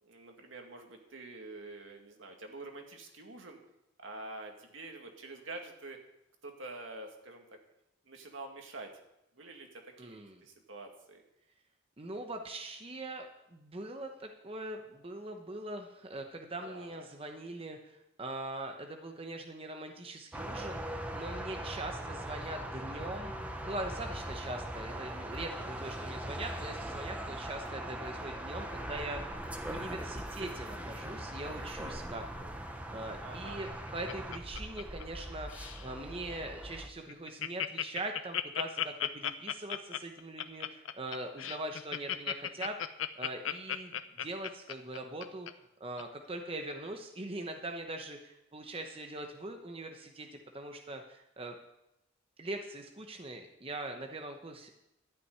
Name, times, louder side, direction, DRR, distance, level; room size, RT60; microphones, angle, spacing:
voice 1, 0.0-3.6 4.0-6.0 6.4-7.6 8.1-8.9 9.4-11.2 16.6-17.1 22.0-22.1 33.2-33.6, right 2 dB, 70° right, 3 dB, 2.1 m, -47 dB
voice 2, 10.0-10.4 12.0-23.3 23.6-32.5 32.9-42.8 43.2-45.5 45.8-51.6 52.4-54.7, right 2 dB, 30° right, 4 dB, 0.9 m, -42 dB
sound 1, 20.3-36.9, right 1 dB, 5° right, 1.0 m, -40 dB
Laughter, 33.5-35.2 35.5-35.9 36.3-36.4 36.7-36.8 37.1-45.5 46.0-46.1, left 10 dB, 85° left, 0.7 m, -35 dB
13.0 x 5.9 x 9.4 m, 0.87 s
head